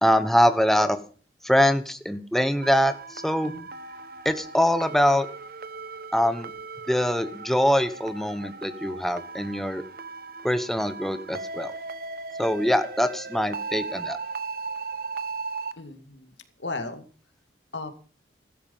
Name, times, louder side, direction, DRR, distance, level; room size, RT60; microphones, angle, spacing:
voice 1, 0.0-1.0 1.4-3.5 4.2-5.3 6.1-6.5 6.9-9.8 10.4-11.7 12.4-14.2, equal, ahead, 10 dB, 1.0 m, -23 dB
sound 1, 2.6-15.7, right 4 dB, 50° right, 1.2 m, -37 dB
voice 2, 15.8-16.3 16.6-17.1 17.7-17.9, left 3 dB, 85° left, 8 dB, 2.3 m, -35 dB
15.0 x 13.0 x 5.5 m, 0.39 s
head